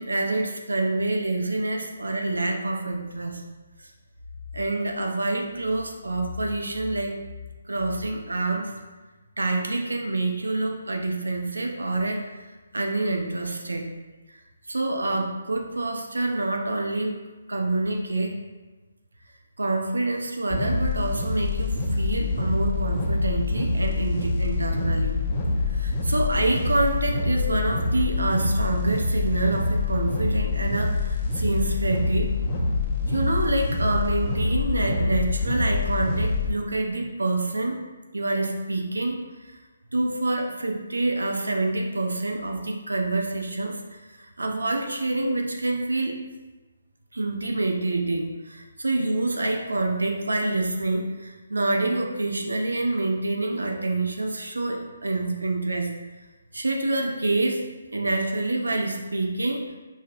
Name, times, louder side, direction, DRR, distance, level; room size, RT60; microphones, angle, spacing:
voice 1, 0.0-3.4 3.8-3.9 4.5-7.2 7.7-8.7 9.4-12.3 12.7-13.9 14.7-17.2 17.5-18.4 19.6-25.2 25.7-32.3 33.1-37.8 38.1-39.2 39.9-46.2 47.1-55.9 56.5-59.7, right 2 dB, 85° right, 2 dB, 0.6 m, -27 dB
sound 1, 20.5-36.5, left 3 dB, 25° left, 0.7 m, -25 dB
4.8 x 2.7 x 2.5 m, 1.2 s
figure-of-eight pair, 145°, 0 cm